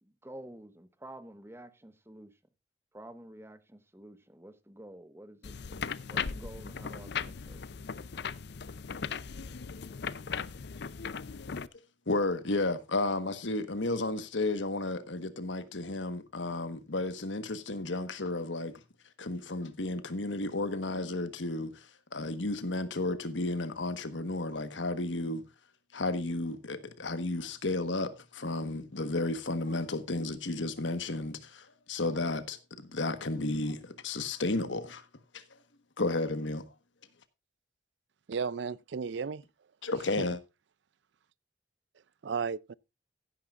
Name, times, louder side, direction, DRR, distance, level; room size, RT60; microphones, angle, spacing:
voice 1, 0.0-2.3 2.9-7.6, right 1 dB, 15° right, 1.0 m, -50 dB
sound 1, 5.4-11.7, left 6 dB, 60° left, 0.6 m, -38 dB
voice 2, 12.1-18.7 19.2-21.9 22.1-25.4 25.9-35.0 35.3-35.4 36.0-36.7 39.8-40.4, left 2 dB, 75° left, 1.3 m, -33 dB
voice 3, 38.3-39.4 39.9-40.3 42.2-42.7, right 5 dB, 65° right, 0.4 m, -34 dB
16.0 x 9.6 x 2.5 m
head